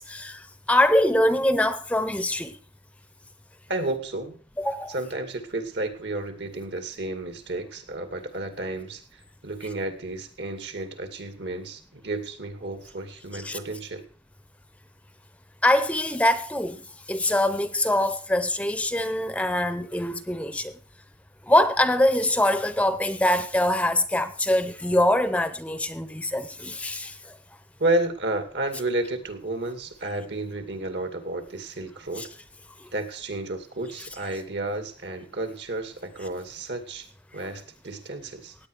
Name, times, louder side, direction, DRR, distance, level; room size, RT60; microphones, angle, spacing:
voice 1, 0.0-2.6 4.6-4.9 13.3-13.6 15.6-20.7 21.5-27.4 32.2-32.3 32.8-32.9, left 1 dB, 5° left, 0.6 m, -24 dB
voice 2, 3.7-4.3 4.9-14.0 27.8-32.3 32.9-38.6, right 2 dB, 70° right, 2.5 m, -31 dB
17.0 x 9.3 x 4.9 m
head